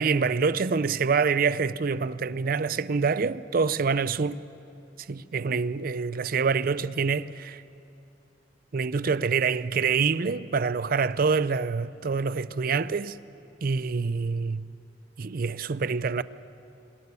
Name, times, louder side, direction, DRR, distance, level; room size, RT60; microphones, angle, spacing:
voice 1, 0.0-4.4 5.1-7.6 8.7-13.2 13.6-14.7 15.2-16.2, right 5 dB, 50° right, 0.5 m, -26 dB
25.0 x 14.0 x 9.8 m
head